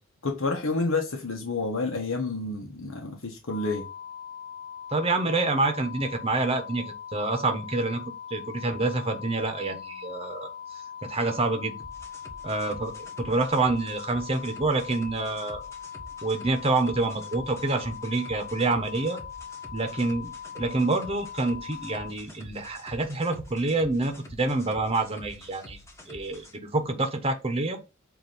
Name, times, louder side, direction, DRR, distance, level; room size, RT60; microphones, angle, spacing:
voice 1, 0.2-3.9, left 3 dB, 75° left, 1.1 m, -29 dB
sound 1, 3.5-22.1, left 8 dB, 40° left, 0.9 m, -41 dB
voice 2, 4.9-8.0 8.3-10.5 11.0-11.8 12.4-12.9 13.2-15.6 16.2-19.2 19.7-25.8 26.1-27.8, right 3 dB, 30° right, 1.0 m, -27 dB
sound 2, 11.8-26.6, left 1 dB, 15° left, 1.3 m, -48 dB
8.1 x 2.8 x 5.4 m
head